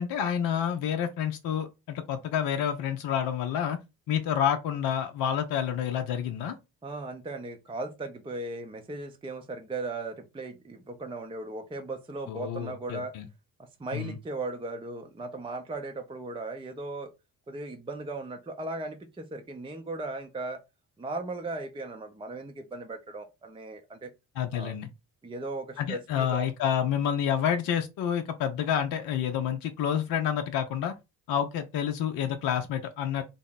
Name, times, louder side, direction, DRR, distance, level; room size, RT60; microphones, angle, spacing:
voice 1, 0.0-3.8 4.1-6.6 12.3-13.2 13.9-14.2 24.4-24.9 25.8-30.9 31.3-33.2, left 9 dB, 55° left, 0.6 m, -29 dB
voice 2, 6.8-13.1 13.6-17.1 17.5-20.6 21.0-24.1 24.5-24.7 25.2-26.5, right 2 dB, 10° right, 0.6 m, -37 dB
3.5 x 2.0 x 3.9 m
hypercardioid pair, 45°, 44 cm